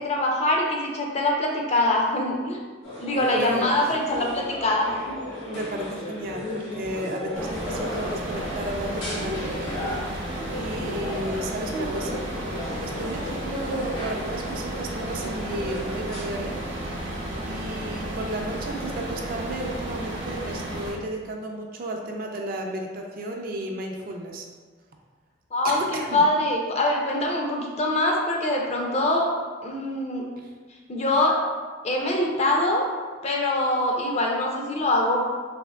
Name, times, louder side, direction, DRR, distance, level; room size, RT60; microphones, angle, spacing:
voice 1, 0.0-2.6 3.0-5.1 25.5-25.8 26.1-29.3 29.6-30.2 30.9-31.4 31.8-32.8 33.2-35.2, left 1 dB, 35° left, 0 dB, 0.4 m, -23 dB
sound 1, 2.8-16.2, left 1 dB, 90° left, 1.0 m, -35 dB
voice 2, 3.3-3.8 5.4-9.6 10.5-12.2 12.8-16.6 17.5-24.5 25.6-26.2 30.4-30.5, right 1 dB, 50° right, 1 dB, 0.4 m, -33 dB
sound 2, 7.4-20.9, right 1 dB, 85° right, 0.8 m, -33 dB
3.4 x 2.8 x 2.2 m, 1.4 s
head